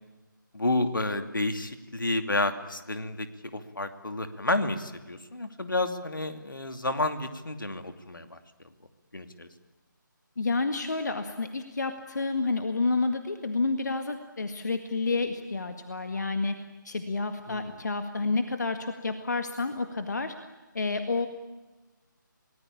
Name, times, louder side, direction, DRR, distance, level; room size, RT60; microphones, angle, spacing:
voice 1, 0.5-3.3 3.5-8.4 9.1-9.5 17.5-17.7, left 2 dB, 75° left, 8 dB, 2.7 m, -30 dB
voice 2, 10.4-20.4 20.7-21.3, left 3 dB, 55° left, 7 dB, 1.9 m, -29 dB
29.0 x 19.0 x 8.8 m, 1.2 s
figure-of-eight pair, 155°, 11 cm